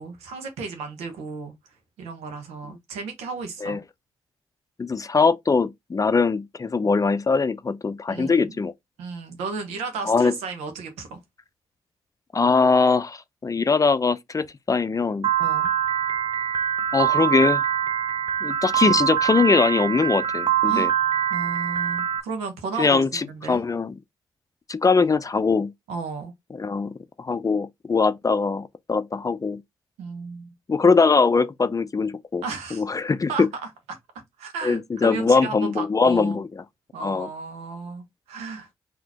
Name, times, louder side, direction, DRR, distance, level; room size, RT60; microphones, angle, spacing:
voice 1, 0.0-1.5 2.0-3.8 8.1-8.5 9.0-11.2 15.4-15.7 20.7-20.9 21.3-23.6 25.9-26.3 30.0-30.5 32.4-32.8 33.3-33.5 33.9-34.0 34.4-36.4 36.9-38.7, right 4 dB, 85° right, 1.0 m, -34 dB
voice 2, 4.8-8.7 10.1-10.3 12.3-15.3 16.9-17.6 18.4-20.9 22.8-23.9 24.7-25.7 26.5-29.6 30.7-32.4 32.7-33.5 34.6-36.6 37.0-37.3, left 4 dB, 30° left, 0.5 m, -21 dB
Piano, 15.2-22.2, right 10 dB, 50° right, 0.5 m, -24 dB
3.9 x 2.9 x 2.9 m
hypercardioid pair, 40°, 11 cm